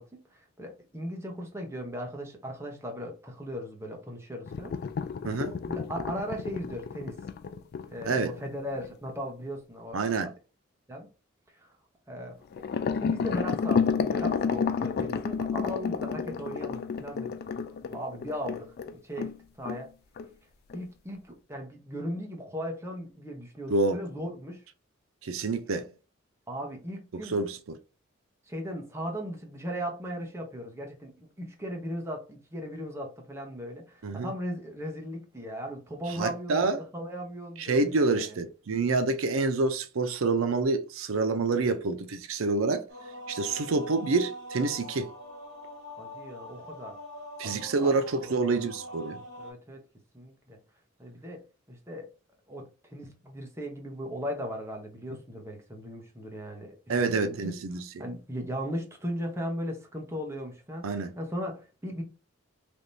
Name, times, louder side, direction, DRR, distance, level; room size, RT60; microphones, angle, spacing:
voice 1, 0.0-4.7 5.7-7.2 7.9-10.0 10.9-11.1 11.5-11.7 12.1-12.6 13.0-17.3 17.9-19.3 19.6-19.9 20.7-24.6 26.5-27.3 28.5-38.4 46.0-47.0 47.4-47.9 49.4-49.8 50.1-50.6 51.0-51.4 51.7-52.1 52.5-57.5 58.0-62.0, equal, 15° right, 0.9 m, -37 dB
sound 1, 4.5-9.1 12.5-19.4 19.6-19.8 20.2-20.3 20.7-20.8, left 5 dB, 50° left, 0.3 m, -31 dB
voice 2, 9.9-10.3 23.7-24.0 25.2-25.9 27.3-27.8 34.0-34.3 36.2-36.8 37.6-42.9 43.3-45.1 47.4-49.2 56.9-58.0 60.8-61.1, right 3 dB, 90° right, 0.5 m, -27 dB
sound 2, 42.9-49.5, equal, 55° right, 1.7 m, -43 dB
3.4 x 2.9 x 2.6 m
head